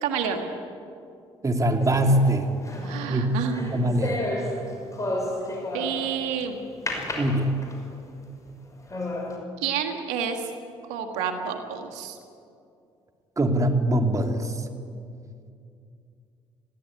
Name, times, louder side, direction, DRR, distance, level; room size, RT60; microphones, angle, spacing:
voice 1, 0.0-0.4 2.8-4.0 5.7-6.6 9.6-10.5 10.9-12.2, right 7 dB, 85° right, 5 dB, 1.8 m, -29 dB
voice 2, 1.4-2.5 3.1-4.3 7.2-7.6 13.4-14.7, right 1 dB, 30° right, 5 dB, 2.6 m, -23 dB
sound 1, 1.8-6.2 6.9-8.0 8.5-8.6 8.9-9.4, left 1 dB, 25° left, 5.8 m, -32 dB
21.5 x 15.5 x 9.7 m, 2.5 s
supercardioid pair, 65°, 12 cm